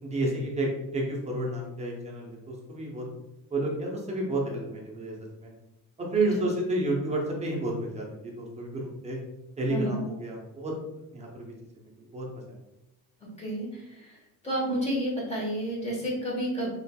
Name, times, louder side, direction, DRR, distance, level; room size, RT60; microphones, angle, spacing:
voice 1, 0.0-3.0 3.5-5.1 5.4-5.5 6.0-9.2 9.6-10.7 11.1-12.6, right 1 dB, 20° right, -2 dB, 0.7 m, -31 dB
voice 2, 13.4-14.2 14.4-16.7, equal, 15° left, -3 dB, 1.0 m, -30 dB
4.3 x 3.3 x 2.2 m, 0.93 s
cardioid pair, 165°, 38 cm